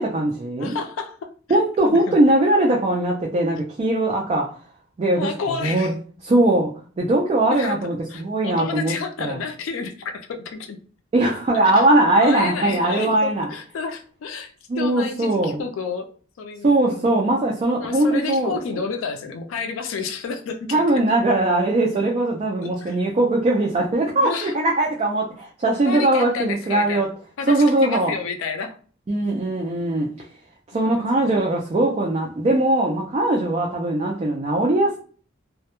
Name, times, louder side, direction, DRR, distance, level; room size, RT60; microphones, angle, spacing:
voice 1, 0.0-0.8 1.5-4.6 5.0-5.3 5.6-5.9 6.2-6.7 7.0-8.9 9.2-9.4 11.1-13.5 14.7-15.6 16.6-18.6 20.7-27.1 27.5-28.1 29.1-30.1 30.7-35.0, right 2 dB, 30° right, 0.3 m, -20 dB
voice 2, 0.6-1.6 1.9-2.2 5.1-5.9 7.5-10.8 11.7-11.9 12.2-16.1 16.4-17.4 17.8-20.8 22.6-23.0 24.1-24.5 25.9-27.0 27.4-28.8 30.2-30.3 30.7-31.3, left 5 dB, 75° left, 0.3 m, -30 dB
2.1 x 2.0 x 2.8 m
head